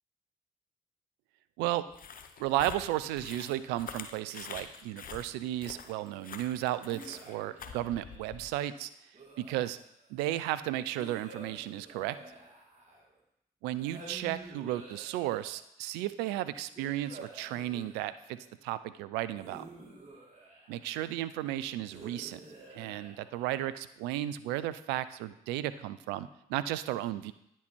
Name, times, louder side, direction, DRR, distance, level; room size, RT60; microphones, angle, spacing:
sound 1, 1.9-8.5, left 6 dB, 55° left, 0.8 m, -46 dB
voice 1, 2.4-8.9 9.4-9.8 10.1-12.2 13.6-19.7 20.7-22.4 22.7-27.3, right 14 dB, 85° right, 14 dB, 0.4 m, -34 dB
sound 2, 6.9-8.4 9.1-10.1 11.0-13.2 13.8-15.6 16.8-18.5 19.3-21.0 21.9-23.9, right 2 dB, 40° right, 2.4 m, -50 dB
9.8 x 4.4 x 4.4 m, 0.78 s
hypercardioid pair, 40°, 17 cm